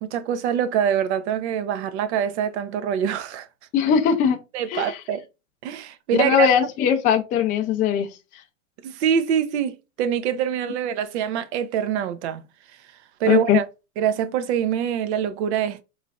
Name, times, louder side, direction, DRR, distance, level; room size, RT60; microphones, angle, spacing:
voice 1, 0.0-3.5 4.5-5.2 5.6-6.5 8.8-12.4 13.2-13.7 14.0-15.8, right 8 dB, 55° right, 0.6 m, -24 dB
voice 2, 3.7-4.4 4.7-5.0 6.2-8.1 13.3-13.6, left 8 dB, 20° left, 0.4 m, -20 dB
3.9 x 3.3 x 2.3 m
hypercardioid pair, 120°, 41 cm